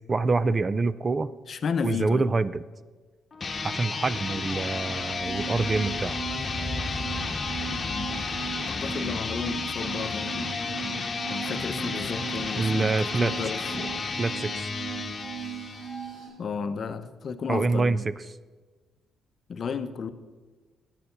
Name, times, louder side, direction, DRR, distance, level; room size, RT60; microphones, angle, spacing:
voice 1, 0.1-1.3 1.8-2.6 3.6-6.2 12.6-13.3 14.2-14.7 17.5-18.1, right 3 dB, 30° right, 17 dB, 0.4 m, -26 dB
voice 2, 1.5-2.3 7.7-8.3 8.6-13.9 16.4-18.0 19.5-20.1, left 6 dB, 50° left, 11 dB, 0.7 m, -33 dB
sound 1, 3.3-16.1, left 4 dB, 35° left, 1.2 m, -32 dB
sound 2, 5.1-11.5, left 2 dB, 15° left, 2.5 m, -39 dB
sound 3, 5.2-16.3, right 9 dB, 80° right, 3.8 m, -39 dB
9.8 x 6.9 x 6.7 m, 1.4 s
cardioid pair, 90°, 0 cm